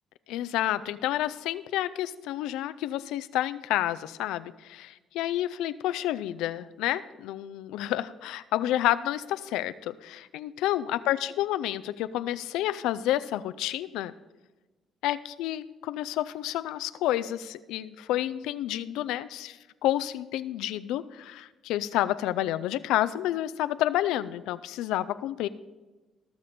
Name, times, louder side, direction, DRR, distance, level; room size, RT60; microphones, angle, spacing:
voice 1, 0.3-14.1 15.0-25.5, left 13 dB, 80° left, 13 dB, 0.4 m, -30 dB
18.0 x 6.8 x 4.3 m, 1.2 s
supercardioid pair, 80°, 0 cm